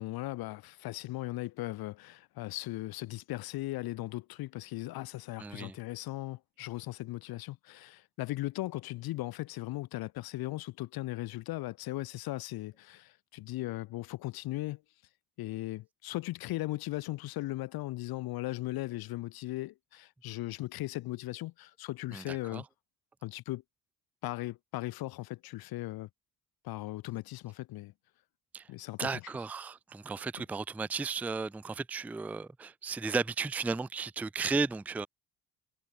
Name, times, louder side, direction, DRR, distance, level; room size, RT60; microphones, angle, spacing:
voice 1, 0.0-14.8 15.4-22.6 23.2-23.6 24.2-26.1 26.6-27.9 28.7-29.3, left 18 dB, 70° left, 0.6 m, -38 dB
voice 2, 5.4-5.7 22.1-22.6 28.5-28.6 29.0-35.1, right 4 dB, 5° right, 0.4 m, -34 dB
cardioid pair, 80°, 38 cm